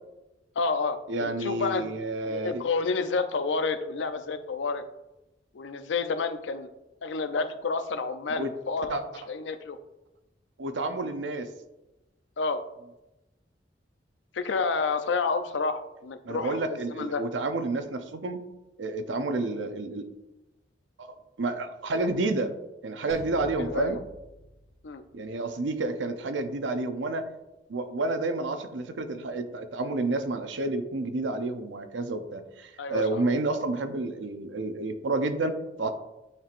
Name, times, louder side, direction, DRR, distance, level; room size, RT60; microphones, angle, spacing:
voice 1, 0.6-1.9 2.3-4.8 5.5-6.7 7.0-9.8 12.4-12.6 14.3-17.2 23.7-24.0 24.8-25.0 32.8-33.2, left 4 dB, 75° left, 10 dB, 0.5 m, -29 dB
voice 2, 1.1-2.6 8.4-8.5 8.9-9.0 10.6-11.5 16.2-18.4 18.8-20.1 21.0-22.5 22.8-24.0 25.1-27.3 27.7-35.9, right 2 dB, 75° right, 8 dB, 0.6 m, -30 dB
sound 1, 23.1-25.6, equal, 5° right, 2.0 m, -45 dB
8.7 x 4.4 x 2.5 m, 0.99 s
head